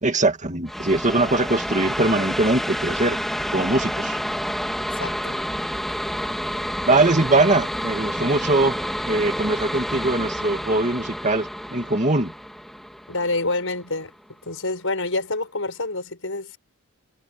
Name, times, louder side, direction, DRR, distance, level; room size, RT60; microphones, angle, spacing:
voice 1, 0.0-3.2 3.5-4.2 6.9-12.3, right 2 dB, 35° right, 2.1 m, -21 dB
sound 1, 0.7-14.0, equal, ahead, 2.6 m, -29 dB
voice 2, 5.0-5.4 13.1-14.1 14.4-16.6, left 2 dB, 65° left, 7.8 m, -27 dB
head